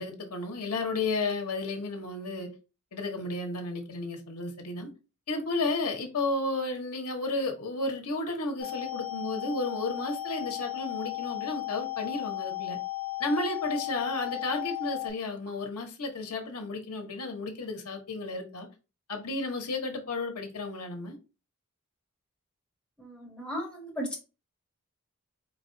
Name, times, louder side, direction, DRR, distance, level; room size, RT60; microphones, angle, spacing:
voice 1, 0.0-2.5 2.9-4.9 5.3-12.8 13.2-18.7 19.1-21.2, left 2 dB, 80° left, 1.1 m, -33 dB
sound 1, 8.6-15.1, left 14 dB, 65° right, 2.4 m, -35 dB
voice 2, 23.0-24.2, equal, 5° left, 1.4 m, -36 dB
4.6 x 2.4 x 3.8 m
head